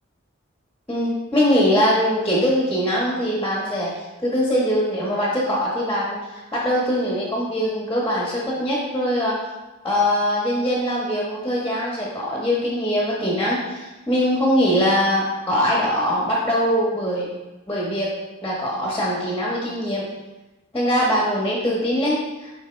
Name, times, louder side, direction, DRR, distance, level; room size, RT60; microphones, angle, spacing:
voice 1, 0.9-9.4 9.8-17.3 17.7-18.1 18.4-20.1 20.7-22.5, equal, 10° left, -4 dB, 1.3 m, -22 dB
9.3 x 4.2 x 3.3 m, 1.1 s
head